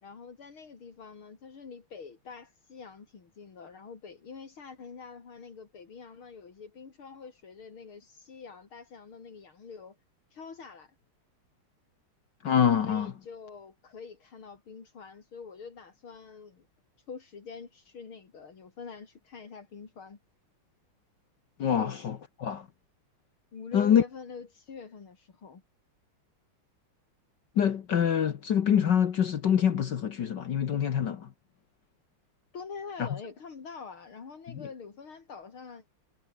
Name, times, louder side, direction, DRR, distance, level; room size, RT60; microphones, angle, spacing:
voice 1, 0.0-10.0 10.3-10.9 12.8-16.7 17.1-20.2 21.7-22.0 23.5-25.6 32.5-35.9, left 5 dB, 75° left, 3.9 m, -45 dB
voice 2, 12.4-13.1 21.6-22.7 23.7-24.0 27.6-31.3 33.0-33.1 34.5-34.7, left 8 dB, 60° left, 1.8 m, -25 dB
omnidirectional pair, 2.3 m